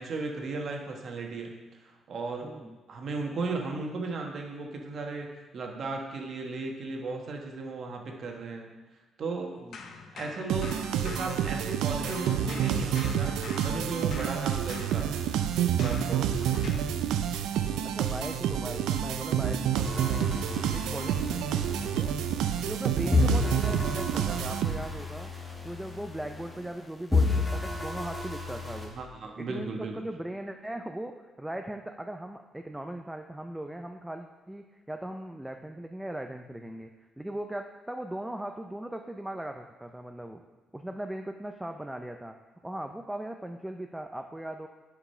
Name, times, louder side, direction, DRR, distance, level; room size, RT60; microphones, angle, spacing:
voice 1, 0.0-2.6 2.9-8.7 9.2-9.6 10.1-13.3 13.6-15.4 15.7-16.6 28.9-29.9, right 3 dB, 55° right, 2 dB, 1.2 m, -36 dB
voice 2, 2.4-2.8 9.6-9.9 16.5-16.9 17.8-22.1 22.6-25.3 25.6-28.9 29.4-36.9 37.2-40.4 40.7-42.4 42.6-44.7, right 1 dB, 5° right, 5 dB, 0.4 m, -39 dB
sound 1, 9.7-11.8 12.0-17.0, left 4 dB, 65° left, 0.8 m, -45 dB
sound 2, 10.5-25.1, right 9 dB, 90° right, 0.4 m, -29 dB
sound 3, 19.8-22.8 23.1-26.8 27.1-28.9, left 3 dB, 15° left, 1.6 m, -31 dB
6.9 x 4.9 x 5.5 m, 1.2 s
cardioid pair, 90°, 0 cm